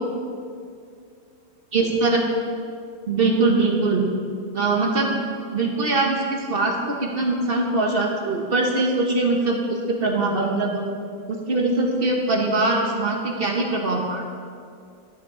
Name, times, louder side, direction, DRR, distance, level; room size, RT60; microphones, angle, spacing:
voice 1, 1.7-2.2 3.1-4.1 4.5-5.1 5.5-10.8 11.3-14.3, right 3 dB, 50° right, 0 dB, 0.7 m, -22 dB
11.0 x 8.7 x 3.6 m, 2.3 s
omnidirectional pair, 2.1 m